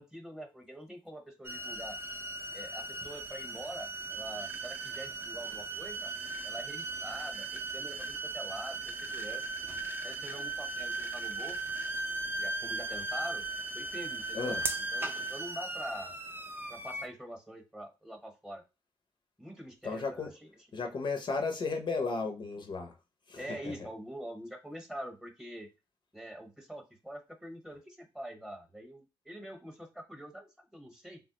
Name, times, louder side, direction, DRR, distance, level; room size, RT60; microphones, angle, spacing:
voice 1, 0.0-2.0 2.5-6.1 6.4-9.5 10.0-11.6 12.4-13.5 13.7-14.6 14.9-16.2 16.7-18.6 19.4-20.5 23.4-25.7 26.1-31.2, equal, 5° right, 0.9 m, -45 dB
sound 1, 1.4-17.1, right 3 dB, 20° right, 0.5 m, -37 dB
voice 2, 19.8-20.3 20.7-22.9 23.3-23.6, left 4 dB, 55° left, 0.5 m, -34 dB
3.2 x 2.1 x 2.8 m
cardioid pair, 75°, 10 cm